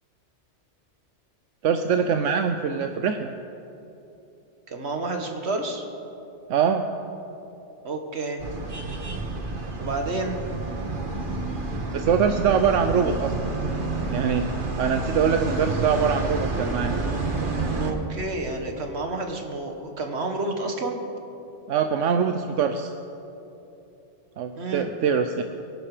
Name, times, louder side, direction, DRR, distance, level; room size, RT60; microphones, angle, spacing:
voice 1, 1.6-3.3 6.5-6.9 11.9-13.5 14.1-14.5 14.8-16.9 21.7-22.9 24.4-25.4, right 7 dB, 85° right, 7 dB, 1.0 m, -23 dB
voice 2, 4.7-5.8 7.8-8.4 9.8-10.4 17.7-21.0 24.5-24.9, right 2 dB, 60° right, 4 dB, 1.8 m, -30 dB
sound 1, 8.4-17.9, right 3 dB, 45° right, 1.6 m, -29 dB
24.5 x 11.5 x 5.0 m, 2.9 s
omnidirectional pair, 1.2 m